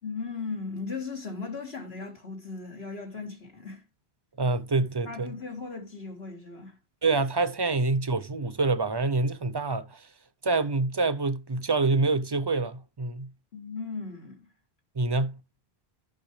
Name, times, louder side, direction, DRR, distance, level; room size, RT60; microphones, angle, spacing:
voice 1, 0.0-3.8 5.1-6.7 13.5-14.5, left 4 dB, 80° left, 2.8 m, -37 dB
voice 2, 4.4-5.3 7.0-10.1 10.4-13.3 15.0-15.4, right 3 dB, 30° right, 0.5 m, -26 dB
14.0 x 6.1 x 3.2 m
omnidirectional pair, 1.0 m